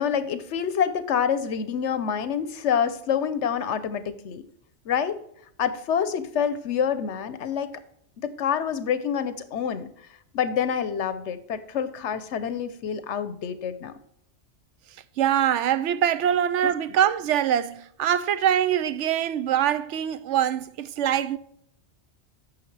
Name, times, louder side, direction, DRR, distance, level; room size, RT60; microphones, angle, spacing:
voice 1, 0.0-4.4 4.9-5.2 5.6-7.7 8.2-9.9 10.3-13.9 16.6-16.7, left 8 dB, 80° left, 1.1 m, -27 dB
voice 2, 15.2-21.4, right 10 dB, 85° right, 0.9 m, -23 dB
8.9 x 6.5 x 3.3 m
omnidirectional pair, 1.2 m